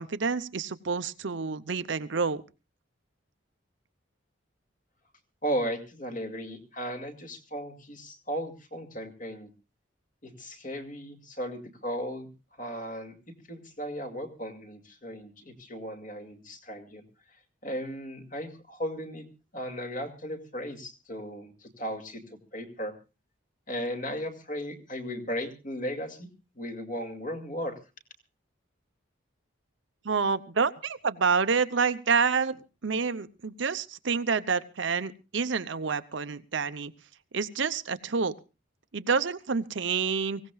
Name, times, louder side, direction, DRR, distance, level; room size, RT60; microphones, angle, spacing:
voice 1, 0.0-2.4 30.0-36.9 37.3-38.3 38.9-40.4, right 5 dB, 70° right, 11 dB, 0.7 m, -28 dB
voice 2, 5.4-9.5 10.2-12.3 12.6-17.0 17.6-19.2 19.5-23.0 23.7-26.3 26.6-27.8, equal, 45° left, 4 dB, 2.3 m, -36 dB
25.0 x 16.5 x 2.3 m, 0.29 s
head